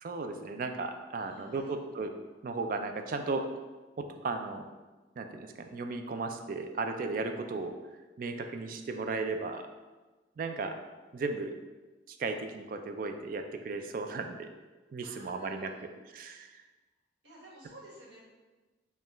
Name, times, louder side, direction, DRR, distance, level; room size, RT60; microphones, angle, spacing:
voice 1, 0.0-2.1 2.4-3.4 4.0-4.6 5.2-7.7 8.2-9.7 10.4-10.7 11.1-11.5 12.1-14.5 14.9-15.7 16.1-16.5, right 3 dB, 50° right, 6 dB, 0.3 m, -35 dB
voice 2, 1.2-1.8 15.0-15.8 17.2-18.2, right 1 dB, 90° right, -5 dB, 1.3 m, -52 dB
5.3 x 2.4 x 2.9 m, 1.2 s
head